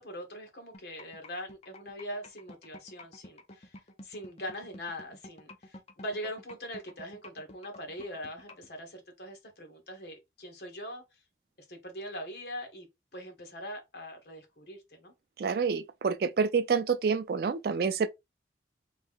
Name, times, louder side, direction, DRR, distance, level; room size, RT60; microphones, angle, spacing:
voice 1, 0.0-11.0 11.7-12.9 13.1-15.1, equal, 65° left, 1.3 m, -42 dB
sound 1, 0.7-8.7, left 1 dB, 35° left, 0.6 m, -49 dB
voice 2, 15.4-18.1, right 5 dB, 60° right, 0.4 m, -28 dB
3.2 x 2.7 x 3.6 m
head